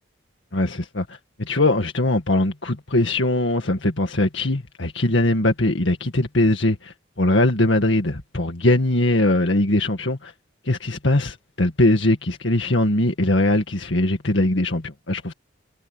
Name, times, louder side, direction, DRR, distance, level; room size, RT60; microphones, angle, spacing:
voice 1, 0.5-10.3 10.7-15.3, left 1 dB, 70° left, 1.9 m, -21 dB
head